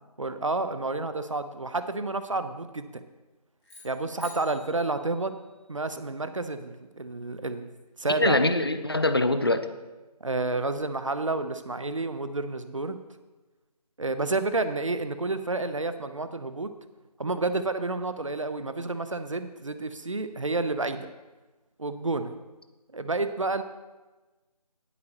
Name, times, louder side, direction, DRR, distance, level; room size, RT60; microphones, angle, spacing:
voice 1, 0.2-3.0 3.8-5.4 5.7-7.7 8.0-8.4 10.2-13.0 14.0-16.7 17.2-21.1 21.8-22.3 22.9-23.6, right 3 dB, 50° right, 10 dB, 0.8 m, -30 dB
sound 1, 3.6-5.9, left 1 dB, 5° left, 1.3 m, -50 dB
voice 2, 8.2-9.7, left 2 dB, 35° left, 10 dB, 0.7 m, -23 dB
19.0 x 8.3 x 3.0 m, 1.2 s
figure-of-eight pair, 180°, 20 cm